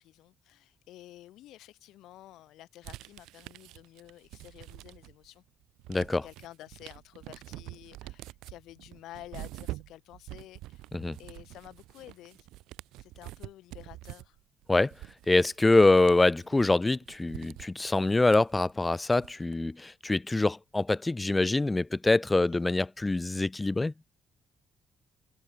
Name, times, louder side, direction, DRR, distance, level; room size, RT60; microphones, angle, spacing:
voice 1, 0.0-5.4 5.9-10.9 11.2-12.5 13.0-14.4 22.5-22.6, left 14 dB, 80° left, 7.5 m, -51 dB
sound 1, 2.8-5.3 5.6-19.5, right 17 dB, 80° right, 5.4 m, -46 dB
voice 2, 5.9-6.2 10.9-11.2 14.7-14.9 15.3-23.9, left 2 dB, 20° left, 1.1 m, -25 dB
supercardioid pair, 60°, 0 cm